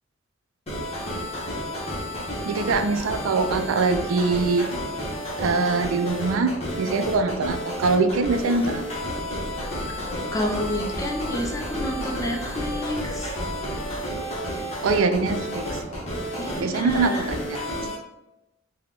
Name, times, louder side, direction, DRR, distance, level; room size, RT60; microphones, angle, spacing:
sound 1, 0.7-17.9, equal, 30° left, 0.9 m, -31 dB
voice 1, 2.4-4.7 5.4-6.5 6.8-8.8 14.8-15.6 16.6-17.6, right 3 dB, 75° right, 8 dB, 0.4 m, -23 dB
sound 2, 8.9-14.0, left 1 dB, 60° left, 0.7 m, -38 dB
voice 2, 10.3-13.3 16.4-17.3, left 1 dB, 15° left, 1 dB, 0.6 m, -30 dB
3.7 x 2.2 x 3.6 m, 0.92 s
head